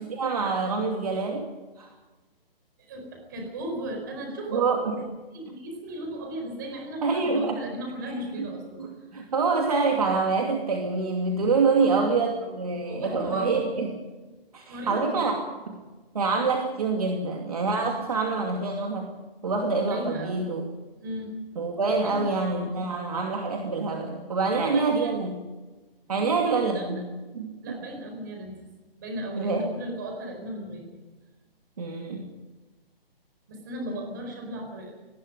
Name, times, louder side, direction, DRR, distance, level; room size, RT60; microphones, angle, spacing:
voice 1, 0.0-1.5 1.8-1.9 4.5-5.0 7.0-7.6 8.4-8.5 8.8-13.9 14.5-15.3 16.1-19.1 19.4-20.6 21.6-25.4 26.1-27.0 27.3-27.8 29.3-29.7 31.8-32.3, right 4 dB, 40° right, 1 dB, 2.6 m, -26 dB
voice 2, 2.8-5.1 5.3-8.8 11.7-12.3 12.9-13.7 14.7-15.3 17.9-18.0 19.9-20.4 21.0-21.3 22.0-22.4 22.8-22.9 24.5-25.1 26.2-27.1 27.6-28.6 29.0-30.9 33.5-34.9, right 1 dB, 20° right, 3 dB, 4.6 m, -36 dB
25.0 x 20.0 x 5.3 m, 1.2 s
hypercardioid pair, 180°, 29 cm